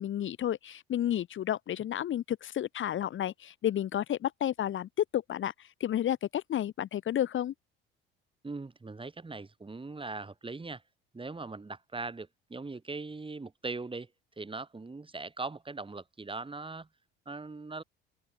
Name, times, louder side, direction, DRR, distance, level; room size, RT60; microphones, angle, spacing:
voice 1, 0.0-7.5, left 11 dB, 40° left, 1.7 m, -31 dB
voice 2, 8.4-10.8 11.1-14.1 14.4-16.9 17.3-17.8, right 3 dB, 15° right, 4.7 m, -40 dB
open air
figure-of-eight pair, 55°, 29 cm